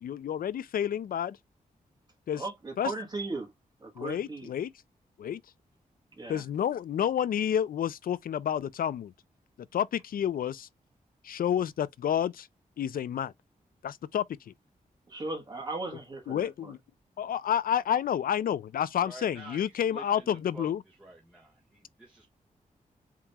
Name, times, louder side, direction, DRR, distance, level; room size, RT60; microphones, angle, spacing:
voice 1, 0.0-1.4 2.3-2.4 2.8-2.9 4.0-4.7 5.2-5.4 6.3-9.1 9.7-10.7 11.2-12.5 12.8-13.3 13.8-14.2 16.3-16.8 17.2-20.8, left 9 dB, 80° left, 0.4 m, -29 dB
voice 2, 2.3-3.5 3.8-4.5 6.2-6.4 15.1-16.7, right 3 dB, 30° right, 1.3 m, -37 dB
voice 3, 19.0-22.3, right 2 dB, 10° right, 1.5 m, -49 dB
7.3 x 2.9 x 2.2 m
wide cardioid pair, 130°, 15 cm